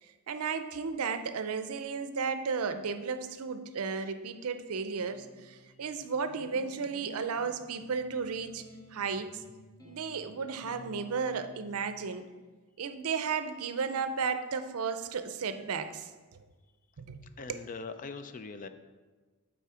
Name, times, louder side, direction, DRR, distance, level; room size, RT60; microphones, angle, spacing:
voice 1, 0.0-8.6 8.9-9.4 9.8-12.2 12.8-16.1 17.0-17.6, right 5 dB, 80° right, 9 dB, 0.5 m, -34 dB
sound 1, 5.0-12.0, left 1 dB, 15° left, 0.9 m, -54 dB
voice 2, 17.4-18.7, left 4 dB, 35° left, 10 dB, 0.4 m, -42 dB
8.3 x 4.2 x 4.9 m, 1.3 s
head